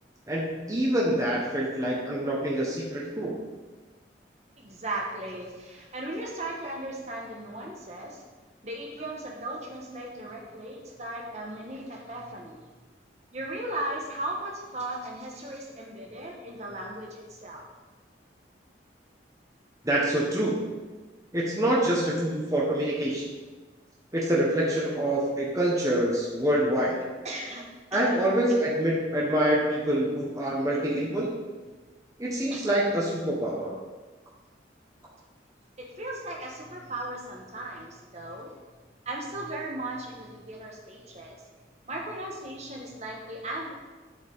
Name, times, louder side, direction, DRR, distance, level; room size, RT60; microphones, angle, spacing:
voice 1, 0.3-3.3 19.8-20.6 21.3-23.3 24.1-27.0 27.9-31.3 32.2-33.7, right 1 dB, 20° right, -4 dB, 1.3 m, -26 dB
voice 2, 4.6-8.2 8.6-12.6 13.3-17.7 27.2-27.6 27.9-28.2 32.5-32.6 35.8-38.5 39.0-41.4 41.9-43.7, right 1 dB, 40° right, -1 dB, 1.4 m, -37 dB
9.6 x 8.2 x 3.7 m, 1.3 s
head